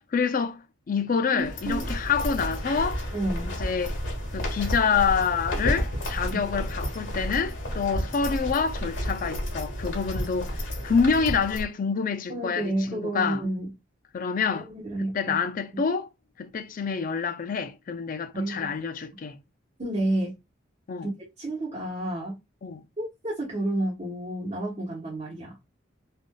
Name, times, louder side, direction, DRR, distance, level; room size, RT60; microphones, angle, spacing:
voice 1, 0.0-3.0 3.4-4.0 4.3-13.4 14.1-14.7 15.1-16.1 16.4-19.4 20.9-21.1 22.6-22.8, left 5 dB, 45° left, 0.4 m, -27 dB
voice 2, 1.3-1.9 3.1-3.5 6.3-6.4 12.3-13.7 14.5-15.4 18.3-18.7 19.8-20.3 21.0-21.1 21.4-22.4 23.0-25.6, right 1 dB, 35° right, 1.0 m, -30 dB
sound 1, 1.4-11.6, equal, 75° left, 1.5 m, -31 dB
3.4 x 2.5 x 2.2 m
head